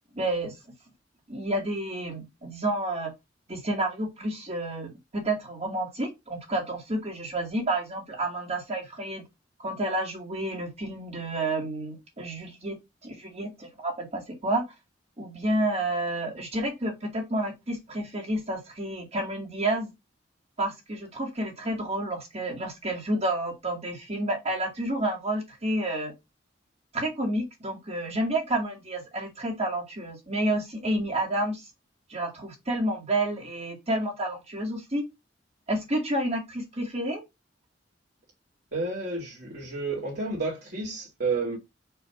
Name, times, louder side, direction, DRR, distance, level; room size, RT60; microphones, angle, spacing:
voice 1, 0.1-0.5 1.3-3.1 3.5-9.2 9.6-12.8 13.0-14.7 15.2-19.9 20.6-26.1 26.9-31.7 32.1-35.0 35.7-37.2, right 1 dB, 35° right, 2.2 m, -30 dB
voice 2, 38.7-41.6, right 3 dB, 60° right, 2.5 m, -31 dB
6.8 x 3.4 x 5.8 m
head